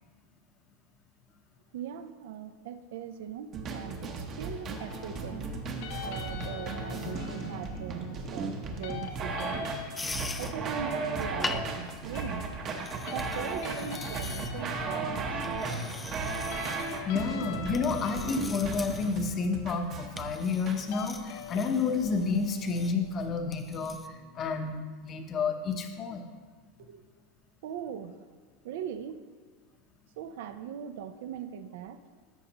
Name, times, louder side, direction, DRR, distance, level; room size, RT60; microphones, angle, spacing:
voice 1, 1.7-5.5 6.0-9.7 10.4-12.6 13.1-15.9 26.8-27.0 27.6-28.2 28.6-29.2 30.2-32.0, right 8 dB, 70° right, 10 dB, 0.5 m, -40 dB
sound 1, 3.5-20.8, right 4 dB, 35° right, 0.9 m, -36 dB
sound 2, 4.8-24.7, left 8 dB, 60° left, 0.6 m, -45 dB
sound 3, 10.0-24.1, left 3 dB, 10° left, 0.3 m, -43 dB
voice 2, 17.0-26.2, left 4 dB, 30° left, 5 dB, 0.8 m, -30 dB
13.5 x 5.4 x 2.9 m, 1.5 s
supercardioid pair, 145°, 0 cm